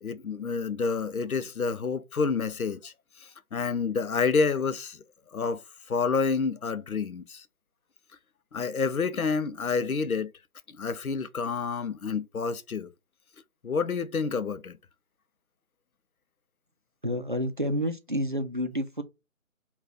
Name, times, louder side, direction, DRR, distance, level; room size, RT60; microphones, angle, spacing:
voice 1, 0.0-2.9 3.5-5.0 5.3-5.6 5.9-7.4 8.5-10.3 10.8-12.9 13.6-14.8, left 5 dB, 90° left, 0.7 m, -28 dB
voice 2, 17.0-19.0, equal, 40° right, 0.4 m, -29 dB
4.0 x 2.3 x 3.8 m
figure-of-eight pair, 155°, 41 cm